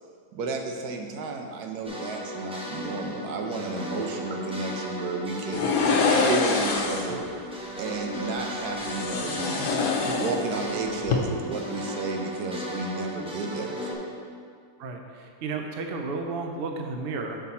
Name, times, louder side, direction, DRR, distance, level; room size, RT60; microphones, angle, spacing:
voice 1, 0.3-5.7 6.1-7.2 7.8-9.6 10.1-14.1, right 3 dB, 75° right, 3 dB, 1.2 m, -32 dB
sound 1, 1.8-13.9, equal, 5° right, 0.5 m, -35 dB
sound 2, 5.5-7.2 8.8-10.7 11.0-11.2, left 4 dB, 80° left, 1.3 m, -25 dB
voice 2, 14.8-17.4, right 3 dB, 60° right, 3 dB, 0.6 m, -33 dB
6.0 x 5.8 x 4.2 m, 2.2 s
omnidirectional pair, 1.7 m